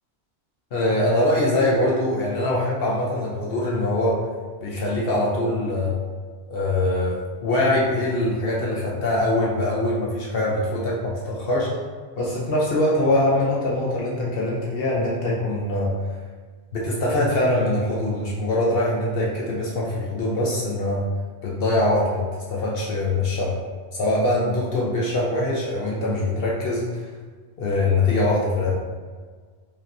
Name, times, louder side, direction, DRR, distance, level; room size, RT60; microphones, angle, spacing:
voice 1, 0.7-4.2 4.6-5.9 6.5-7.1 7.4-11.7 12.2-15.9 16.7-21.0 21.4-23.5 23.9-26.8 27.6-28.7, left 1 dB, 65° left, -4 dB, 0.9 m, -23 dB
5.1 x 2.9 x 2.6 m, 1.5 s
omnidirectional pair, 1.1 m